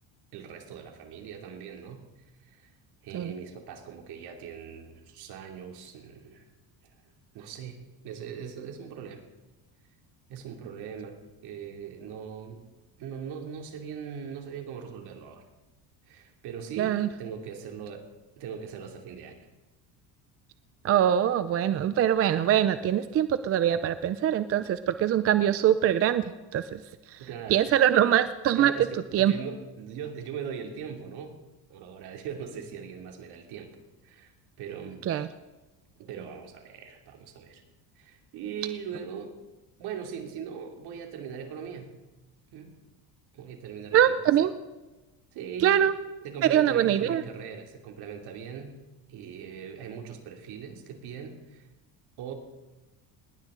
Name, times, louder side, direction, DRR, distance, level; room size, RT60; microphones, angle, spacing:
voice 1, 0.3-2.0 2.4-2.7 3.0-6.5 6.8-6.9 7.3-9.2 10.3-11.2 11.4-12.6 13.0-15.5 16.1-18.1 18.4-19.5 27.2-27.7 28.6-31.4 31.7-33.7 34.0-35.0 36.0-37.6 38.0-39.3 39.8-42.0 42.5-42.8 43.3-44.2 45.3-45.8 46.2-48.8 49.1-51.7 52.2-52.3, right 7 dB, 65° right, 3 dB, 2.9 m, -40 dB
voice 2, 16.8-17.1 20.8-26.2 26.5-26.8 27.5-28.7 29.1-29.3 35.1-35.3 43.9-44.5 45.6-45.9 46.5-47.2, right 10 dB, 35° right, 12 dB, 0.5 m, -23 dB
20.0 x 18.0 x 3.9 m, 1.1 s
cardioid pair, 160°, 42 cm